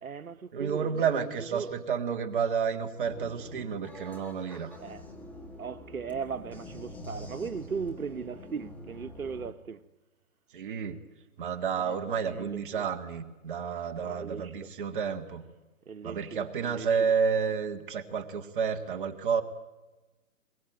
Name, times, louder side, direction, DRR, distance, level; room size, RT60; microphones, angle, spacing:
voice 1, 0.0-1.7 4.8-5.0 5.6-9.8 11.8-12.8 14.0-14.7 15.8-16.9, right 6 dB, 85° right, 1.3 m, -38 dB
voice 2, 0.5-4.7 10.5-11.0 11.4-15.4 16.0-19.4, right 6 dB, 35° right, 1.7 m, -30 dB
sound 1, 3.0-9.5, left 1 dB, 5° left, 1.5 m, -46 dB
22.0 x 22.0 x 9.0 m
hypercardioid pair, 150°, 42 cm